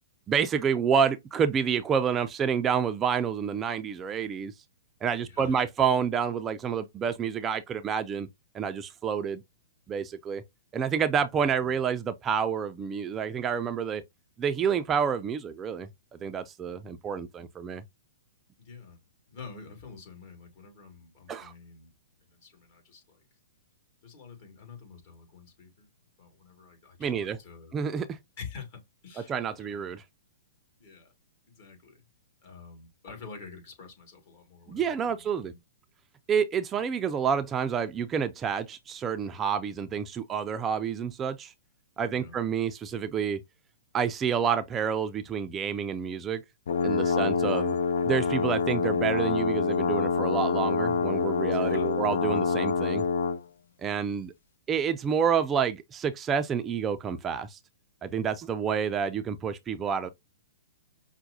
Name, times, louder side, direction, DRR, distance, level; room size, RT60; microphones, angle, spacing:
voice 1, 0.3-4.5 5.0-8.3 8.5-9.4 9.9-10.4 10.7-14.0 14.4-17.8 21.3-21.5 27.0-27.4 27.7-28.2 29.3-30.0 34.7-35.5 36.3-41.5 42.0-43.4 43.9-46.4 46.8-47.8 48.0-53.0 53.8-54.3 54.7-57.6 58.0-60.1, right 7 dB, 20° right, 0.4 m, -28 dB
voice 2, 5.2-5.6 11.1-11.8 18.6-19.0 19.3-21.9 22.2-23.2 24.0-25.9 26.2-27.8 28.4-29.9 30.8-31.1 31.5-32.0 32.4-35.6 42.1-42.4 51.5-51.9, left 5 dB, 50° left, 2.1 m, -48 dB
sound 1, 46.7-53.4, left 5 dB, 70° left, 0.4 m, -26 dB
5.7 x 2.1 x 2.7 m
hypercardioid pair, 125°, 0 cm